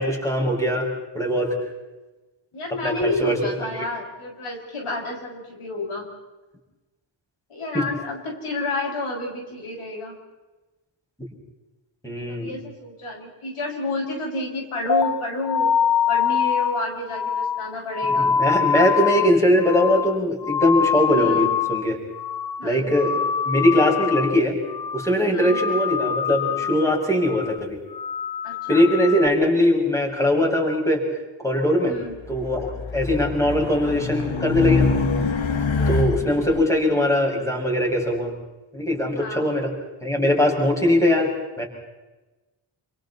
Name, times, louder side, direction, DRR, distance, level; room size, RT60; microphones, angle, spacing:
voice 1, 0.0-1.5 2.7-3.4 3.7-3.8 7.7-7.9 12.0-12.5 18.2-22.0 22.6-23.1 23.4-24.6 24.9-27.8 28.7-31.0 31.4-31.9 32.3-35.0 35.9-38.3 38.7-39.7 40.0-41.3 41.6-41.7, left 1 dB, 5° left, -1 dB, 6.6 m, -21 dB
voice 2, 2.5-6.1 7.5-10.2 12.3-15.7 16.1-18.4 21.1-21.5 22.6-22.9 25.2-25.6 28.4-28.9 31.8-32.1 35.7-36.0 39.1-39.5, left 2 dB, 90° left, 0 dB, 6.8 m, -30 dB
sound 1, 14.9-21.9 22.1-22.7 22.9-24.4 24.7-25.1 25.4-26.9 27.2-27.6 27.9-29.3, left 7 dB, 50° left, 1.0 m, -24 dB
Race car auto racing, 32.3-36.6, left 4 dB, 65° left, 1.9 m, -25 dB
28.5 x 28.5 x 4.3 m, 1.1 s
wide cardioid pair, 125°, 49 cm